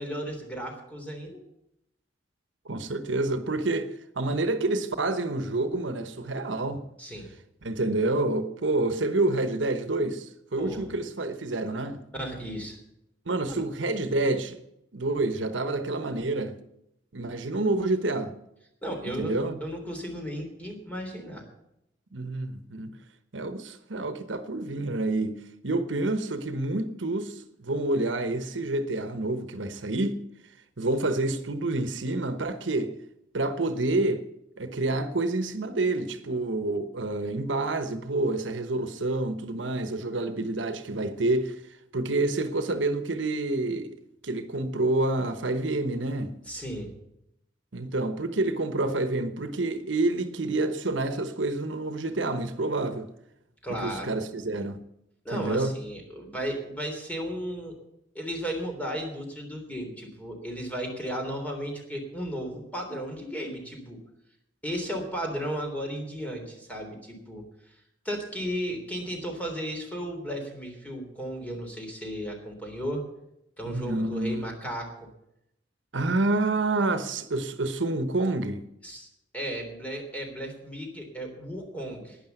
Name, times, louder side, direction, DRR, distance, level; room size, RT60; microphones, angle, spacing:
voice 1, 0.0-1.4 7.0-7.3 10.6-10.9 12.1-12.8 13.5-13.6 18.8-21.4 46.5-46.9 53.6-54.1 55.2-57.8 58.1-64.0 64.6-67.4 68.0-73.0 73.6-75.1 78.8-79.1 79.3-82.2, equal, 10° left, 3.4 m, -34 dB
voice 2, 2.6-6.8 7.6-12.0 13.3-14.6 14.9-16.6 17.1-18.3 19.0-19.6 22.1-22.9 23.3-25.4 25.6-30.2 30.8-32.9 33.3-34.2 34.6-41.6 41.9-43.9 44.2-46.3 47.7-53.1 53.8-54.8 55.3-55.8 73.7-74.5 75.9-78.6 81.8-81.9, right 2 dB, 75° right, 1.1 m, -28 dB
12.0 x 10.0 x 8.0 m
head